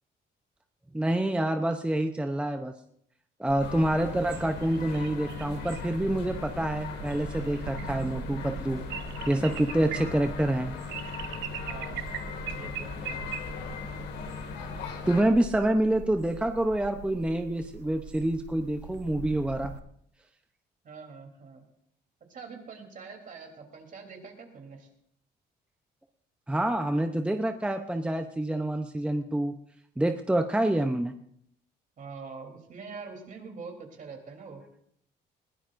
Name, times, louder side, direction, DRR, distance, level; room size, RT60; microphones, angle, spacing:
voice 1, 0.9-2.7 3.4-8.8 9.3-10.7 15.1-19.7 26.5-29.6 30.0-31.1, right 1 dB, 5° right, 6 dB, 0.7 m, -27 dB
sound 1, 3.5-19.8, right 8 dB, 85° right, 0.9 m, -41 dB
sound 2, 3.6-15.2, left 6 dB, 80° left, 2.2 m, -39 dB
voice 2, 11.7-12.1 12.5-13.3 20.8-21.6 22.3-24.9 32.0-34.6, right 5 dB, 50° right, 2 dB, 3.5 m, -44 dB
21.5 x 16.0 x 2.6 m, 0.67 s
cardioid pair, 100°, 17 cm